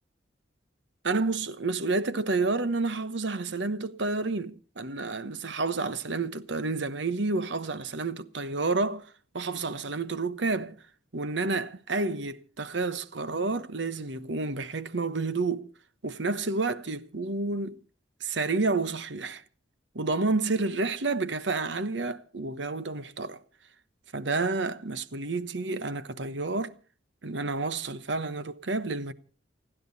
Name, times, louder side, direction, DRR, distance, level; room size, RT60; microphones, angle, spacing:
voice 1, 1.0-10.8 11.1-15.7 16.0-17.8 18.2-19.4 19.9-23.4 24.1-26.7 27.2-29.1, right 3 dB, 70° right, 1.1 m, -30 dB
29.0 x 10.5 x 4.1 m
head